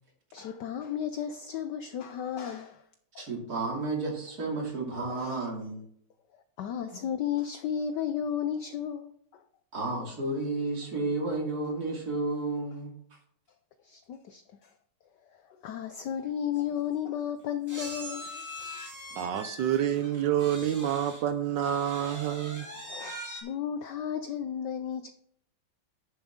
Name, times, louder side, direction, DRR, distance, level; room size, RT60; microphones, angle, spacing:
voice 1, 0.3-2.8 3.1-3.3 5.1-5.4 6.3-9.4 13.8-14.7 15.3-18.8 22.6-25.1, left 9 dB, 70° left, 1.0 m, -34 dB
voice 2, 3.2-5.8 9.7-12.9, right 2 dB, 45° right, 3.0 m, -32 dB
sound 1, 16.2-16.3 16.5-16.7 17.7-21.3 21.6-23.4, equal, 10° right, 1.7 m, -42 dB
voice 3, 19.2-22.7, right 10 dB, 75° right, 1.1 m, -28 dB
10.5 x 7.1 x 3.7 m
omnidirectional pair, 2.4 m